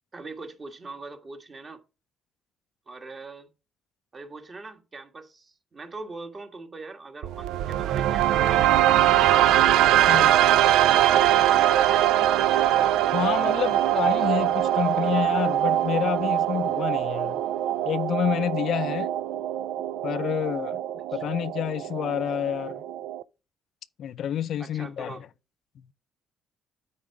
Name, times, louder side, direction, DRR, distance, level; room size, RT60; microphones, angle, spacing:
voice 1, 0.1-1.8 2.9-3.5 4.1-10.3 11.1-12.1 21.1-21.2 24.6-25.3, right 3 dB, 35° right, 1.6 m, -42 dB
sound 1, 7.2-23.2, right 12 dB, 80° right, 0.4 m, -22 dB
voice 2, 13.1-17.4 17.8-19.1 20.0-20.8 21.1-22.8 24.0-25.2, left 10 dB, 65° left, 0.5 m, -28 dB
8.7 x 4.5 x 4.8 m
cardioid pair, 85°, 0 cm